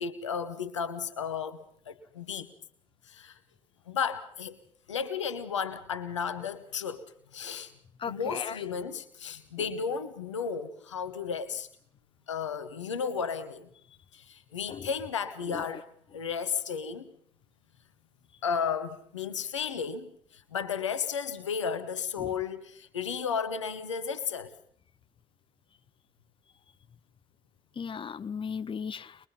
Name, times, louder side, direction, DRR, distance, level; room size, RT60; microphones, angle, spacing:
voice 1, 0.0-2.5 3.1-3.4 3.9-4.6 4.9-7.1 7.3-7.7 8.1-11.7 12.3-13.7 14.1-15.8 16.1-17.1 18.4-24.5, left 6 dB, 80° left, 1.1 m, -33 dB
voice 2, 8.0-8.6 14.7-14.9 15.5-15.8 22.2-22.3 27.8-29.2, left 6 dB, 35° left, 0.9 m, -37 dB
23.5 x 22.0 x 5.8 m
figure-of-eight pair, 40°, 15 cm